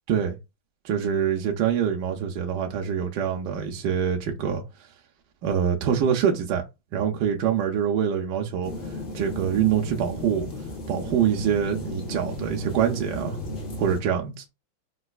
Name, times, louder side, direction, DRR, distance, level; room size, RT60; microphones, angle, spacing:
voice 1, 0.8-4.6 5.4-6.6 6.9-8.7 9.1-10.5 10.9-13.4 13.8-14.4, right 8 dB, 75° right, 1.0 m, -25 dB
sound 1, 8.6-14.0, left 1 dB, 60° left, 0.5 m, -35 dB
3.9 x 2.2 x 2.3 m
omnidirectional pair, 2.3 m